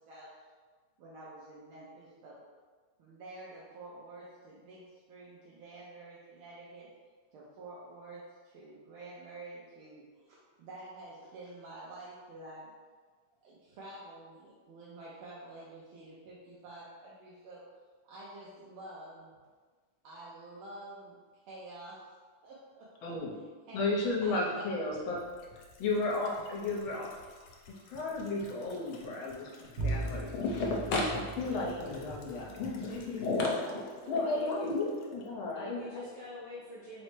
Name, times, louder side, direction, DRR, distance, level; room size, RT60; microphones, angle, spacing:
voice 1, 1.0-2.4 3.0-4.8 5.1-6.9 7.3-10.0 10.3-12.7 13.4-17.6 18.0-19.3 20.0-21.2 21.5-22.0 22.4-23.1 23.7-23.9 24.2-25.0 31.4-31.6 33.6-34.7, right 2 dB, 85° right, -7 dB, 1.5 m, -49 dB
voice 2, 23.0-23.3 23.7-25.2 25.8-27.1 27.9-36.1, left 2 dB, 75° left, -3 dB, 1.5 m, -33 dB
sound 1, 24.9-35.3 35.6-35.7, left 4 dB, 90° left, 1.5 m, -51 dB
Bowed string instrument, 29.8-32.8, right 2 dB, 60° right, 1.3 m, -38 dB
voice 3, 31.5-32.6 34.2-34.7 35.3-37.0, left 2 dB, 50° left, -12 dB, 0.6 m, -47 dB
4.2 x 2.1 x 4.5 m, 1.5 s
omnidirectional pair, 2.3 m